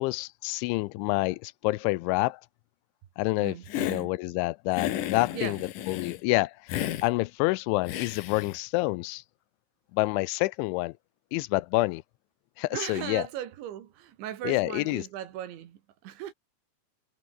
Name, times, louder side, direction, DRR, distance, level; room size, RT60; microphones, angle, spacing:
voice 1, 0.0-2.4 3.2-5.6 5.9-6.7 7.0-9.2 9.9-11.0 11.3-12.0 12.6-13.3 14.4-15.1, left 21 dB, 85° left, 3.0 m, -28 dB
voice 2, 3.4-4.1 5.3-5.7 12.7-16.3, right 11 dB, 75° right, 4.3 m, -38 dB
Hiss, 3.7-4.0 4.7-6.2 6.7-7.1 7.9-8.6, left 12 dB, 70° left, 2.1 m, -33 dB
omnidirectional pair, 5.4 m